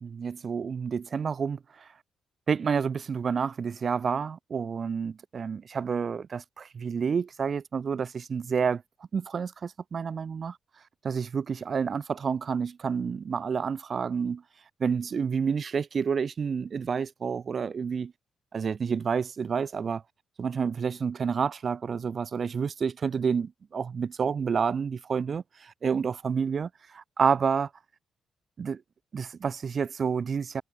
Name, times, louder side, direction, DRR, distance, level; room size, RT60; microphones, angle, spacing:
voice 1, 0.0-1.6 2.5-8.8 9.1-10.6 11.0-14.4 14.8-18.1 18.5-20.0 20.4-27.7 28.6-28.8 29.1-30.6, right 6 dB, 35° right, 0.4 m, -29 dB
cardioid pair, 170°, 0 cm